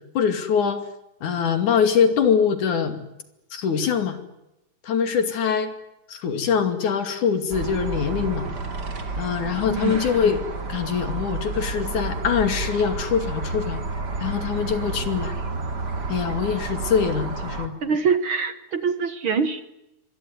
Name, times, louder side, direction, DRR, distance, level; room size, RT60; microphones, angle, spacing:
voice 1, 0.2-0.8 1.2-3.0 3.5-4.2 4.8-5.7 6.1-8.5 9.2-10.4 10.7-13.8 14.2-15.3 16.1-17.7, left 7 dB, 85° left, 9 dB, 4.0 m, -23 dB
sound 1, 7.5-17.7, right 3 dB, 35° right, 2.9 m, -30 dB
voice 2, 9.7-10.0 17.8-19.6, right 5 dB, 50° right, 11 dB, 1.8 m, -24 dB
25.0 x 21.0 x 9.6 m, 0.90 s
omnidirectional pair, 3.4 m